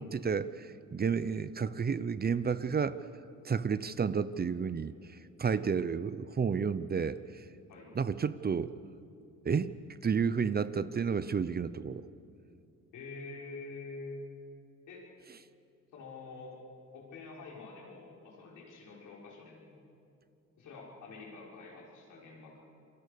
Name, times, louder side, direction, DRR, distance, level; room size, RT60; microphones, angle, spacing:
voice 1, 0.0-3.0 3.4-5.0 5.4-7.2 7.9-8.7 9.4-9.7 10.0-12.0, right 6 dB, 30° right, 15 dB, 0.7 m, -31 dB
voice 2, 12.9-14.2 14.9-15.0 15.9-16.5 16.9-19.8 20.6-22.6, left 3 dB, 80° left, -3 dB, 5.9 m, -47 dB
27.5 x 22.5 x 6.9 m, 2.6 s
cardioid pair, 90°, 30 cm